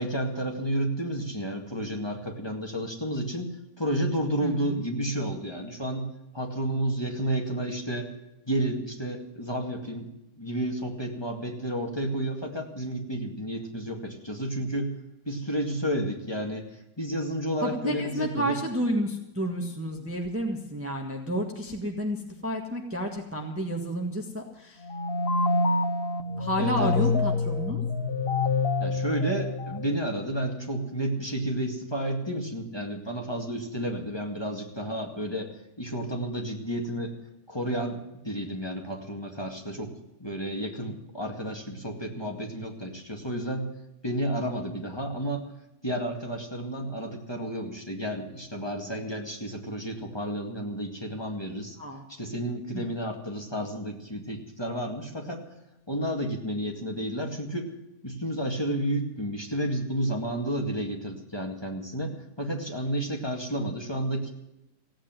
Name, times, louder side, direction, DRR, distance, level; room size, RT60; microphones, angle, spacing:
voice 1, 0.0-6.1 6.3-8.1 8.5-10.1 10.4-14.9 15.3-18.6 26.6-27.0 28.8-35.5 35.8-37.2 37.5-39.9 40.2-43.7 44.0-45.5 45.8-51.8 52.1-55.5 55.9-57.7 58.0-64.3, right 1 dB, 15° left, 1 dB, 2.2 m, -31 dB
voice 2, 4.4-4.7 17.6-24.8 26.4-27.8 51.8-52.0, equal, 10° right, 1 dB, 1.6 m, -30 dB
sound 1, 24.8-30.3, left 3 dB, 40° left, 1.0 m, -27 dB
16.5 x 9.0 x 9.1 m, 0.90 s
omnidirectional pair, 1.7 m